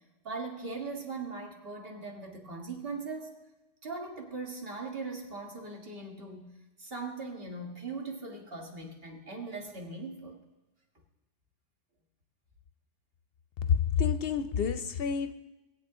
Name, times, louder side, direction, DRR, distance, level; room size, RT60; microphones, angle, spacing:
voice 1, 0.2-3.3 3.8-10.4, right 3 dB, 55° right, 1 dB, 1.9 m, -40 dB
voice 2, 13.7-15.3, left 7 dB, 65° left, 11 dB, 0.7 m, -28 dB
20.0 x 8.0 x 3.7 m, 1.1 s
omnidirectional pair, 1.2 m